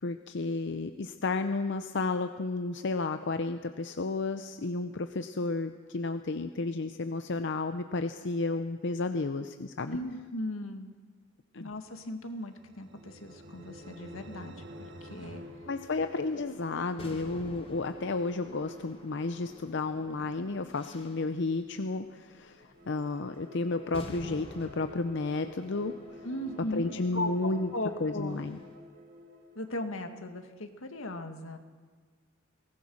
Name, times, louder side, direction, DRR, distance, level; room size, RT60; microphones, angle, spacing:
voice 1, 0.0-10.0 11.5-11.7 15.7-25.9 26.7-27.7 28.0-28.6, left 3 dB, 60° left, 9 dB, 0.7 m, -32 dB
voice 2, 9.9-10.9 11.6-14.5 15.0-15.4 26.2-28.4 29.6-31.6, left 1 dB, 85° left, 6 dB, 2.0 m, -37 dB
sound 1, 12.1-16.6, right 1 dB, 60° right, 1.6 m, -51 dB
sound 2, 12.9-21.5 22.5-29.9, left 1 dB, 45° right, 1.8 m, -50 dB
sound 3, 15.9-28.7, left 1 dB, 30° left, 3.5 m, -50 dB
22.5 x 18.5 x 6.4 m, 1.5 s
head